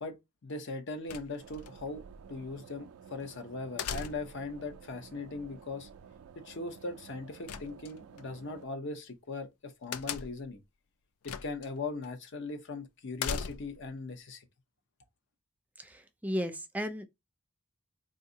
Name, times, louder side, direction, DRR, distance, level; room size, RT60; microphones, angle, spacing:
voice 1, 0.4-2.0 2.3-5.9 6.3-10.6 11.2-14.5, left 3 dB, 55° left, 0.7 m, -39 dB
sound 1, 1.1-1.7 3.8-4.5 7.5-8.2 9.9-10.5 11.2-11.7 12.0-12.1 13.2-13.9, left 6 dB, 85° left, 0.4 m, -38 dB
sound 2, 1.4-8.7, right 6 dB, 70° right, 0.3 m, -52 dB
voice 2, 15.8-17.1, equal, 5° right, 0.4 m, -35 dB
3.8 x 2.6 x 2.7 m
head